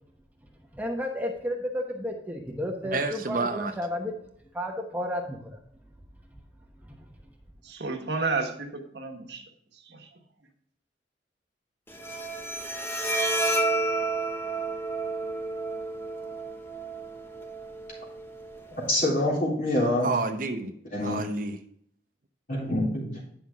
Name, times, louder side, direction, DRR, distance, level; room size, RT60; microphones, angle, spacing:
voice 1, 0.7-4.1 4.5-5.6 6.8-7.0, left 1 dB, 10° right, 0.9 m, -32 dB
voice 2, 2.8-3.7 20.0-20.7 21.0-21.6, right 3 dB, 50° right, 0.7 m, -29 dB
voice 3, 7.6-9.4 9.7-10.1, right 4 dB, 75° right, 1.4 m, -32 dB
Bowed string instrument, 11.9-18.9, right 2 dB, 15° left, 0.7 m, -31 dB
voice 4, 18.7-20.1 20.9-21.3 22.5-23.1, left 1 dB, 50° left, 3.4 m, -26 dB
9.0 x 5.9 x 3.6 m
head